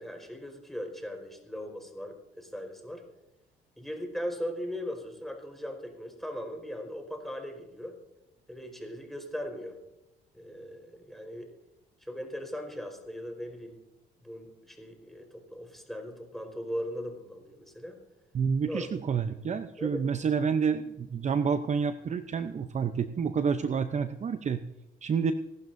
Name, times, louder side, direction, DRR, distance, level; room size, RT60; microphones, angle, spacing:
voice 1, 0.0-3.0 3.8-8.0 8.5-9.8 10.3-11.5 12.0-13.7 14.2-18.0 18.6-18.9 19.8-20.0, equal, ahead, 3 dB, 4.5 m, -39 dB
voice 2, 18.3-24.6 25.0-25.3, right 6 dB, 40° right, 10 dB, 0.7 m, -29 dB
25.0 x 12.0 x 2.7 m, 0.94 s
cardioid pair, 85°, 18 cm